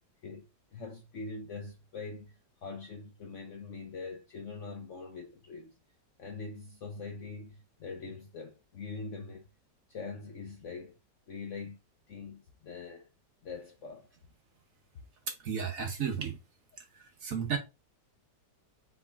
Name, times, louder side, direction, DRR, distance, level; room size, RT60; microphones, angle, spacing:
voice 1, 0.7-5.8 6.2-9.5 9.9-11.0 11.3-11.8 12.1-13.1 13.4-14.2, left 4 dB, 60° left, 0.8 m, -43 dB
voice 2, 15.4-16.4 16.8-16.9 17.2-17.6, right 7 dB, 55° right, 1.1 m, -33 dB
4.7 x 4.1 x 2.4 m
omnidirectional pair, 1.9 m